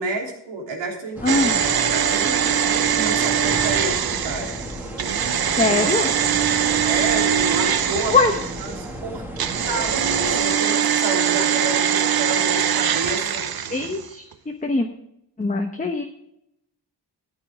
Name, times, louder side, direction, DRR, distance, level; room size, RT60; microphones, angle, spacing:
voice 1, 0.0-1.4 1.9-4.6 5.7-6.3 6.8-8.2 8.6-9.2 9.7-13.5, right 2 dB, 90° right, 0 dB, 3.3 m, -30 dB
voice 2, 1.2-1.6 5.6-6.1 8.1-8.3 13.7-14.2 14.6-14.9 15.4-16.0, left 3 dB, 20° left, 3 dB, 1.0 m, -21 dB
sound 1, 1.2-10.4, equal, 5° right, 2.0 m, -34 dB
sound 2, 1.3-8.8 9.4-14.1 14.3-14.4, right 9 dB, 55° right, 0.8 m, -22 dB
14.0 x 8.8 x 3.5 m, 0.79 s
wide cardioid pair, 110°, 43 cm